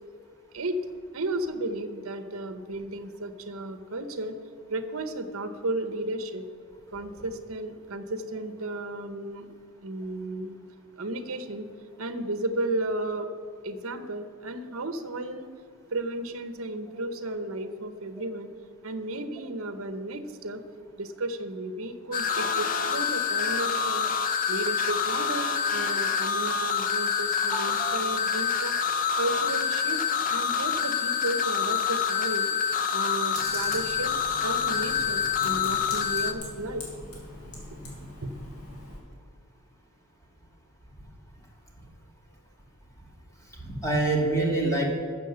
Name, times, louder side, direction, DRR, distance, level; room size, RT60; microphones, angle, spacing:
voice 1, 1.1-4.3 4.7-6.4 6.9-9.5 9.8-10.6 11.0-11.7 12.0-13.3 13.6-15.5 15.9-18.5 18.8-20.6 21.0-24.1 24.5-28.8 29.2-32.5 32.9-34.1 34.4-36.8 37.8-37.9 38.2-38.3, right 2 dB, 70° right, 10 dB, 0.9 m, -33 dB
sound 1, 22.1-36.3, left 6 dB, 35° left, 0.6 m, -27 dB
voice 2, 27.5-27.9 43.6-44.9, right 2 dB, 15° left, -2 dB, 1.8 m, -26 dB
Computer keyboard, 33.3-39.0, left 1 dB, 75° left, 3.8 m, -42 dB
13.0 x 7.2 x 6.8 m, 2.2 s
head